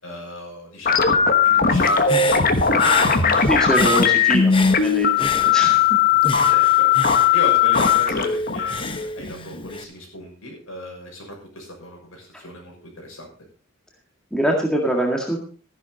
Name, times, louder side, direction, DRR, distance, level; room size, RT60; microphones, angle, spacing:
voice 1, 0.0-3.4 6.5-13.3, left 1 dB, 75° left, 0 dB, 6.4 m, -35 dB
sound 1, 0.9-9.8, left 7 dB, 45° left, 1.2 m, -18 dB
Human voice / Breathing, 1.7-5.9 6.2-9.8, left 4 dB, 25° left, 0.9 m, -30 dB
voice 2, 3.5-5.9 12.3-12.4 14.3-15.4, equal, 5° left, 0 dB, 1.9 m, -24 dB
13.5 x 11.0 x 4.0 m, 0.37 s
head